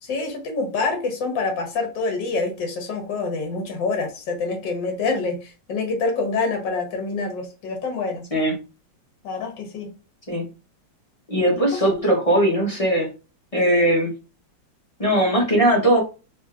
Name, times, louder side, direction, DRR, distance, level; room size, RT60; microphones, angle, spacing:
voice 1, 0.0-8.2 9.2-9.9 11.9-12.0, left 4 dB, 70° left, 3 dB, 1.8 m, -26 dB
voice 2, 11.3-13.1 13.5-14.1 15.0-16.0, right 1 dB, 25° left, -2 dB, 0.9 m, -19 dB
4.0 x 3.2 x 2.5 m, 0.31 s
omnidirectional pair, 2.0 m